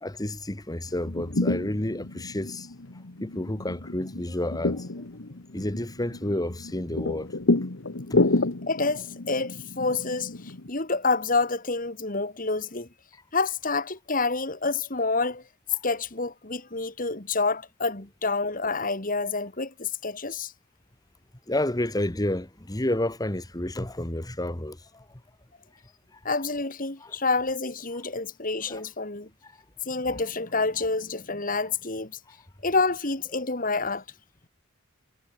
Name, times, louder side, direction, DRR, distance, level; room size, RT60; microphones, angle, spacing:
voice 1, 0.0-2.7 3.2-4.9 5.5-7.3 8.1-8.2 21.5-25.0 27.0-27.1 28.7-28.8 29.4-29.5, left 1 dB, 20° left, 1.3 m, -30 dB
sound 1, 0.8-10.7, left 2 dB, 70° left, 1.4 m, -30 dB
voice 2, 8.7-12.9 13.3-15.4 15.8-20.5 26.2-29.3 29.8-32.2 32.6-34.0, left 3 dB, 40° left, 2.5 m, -28 dB
head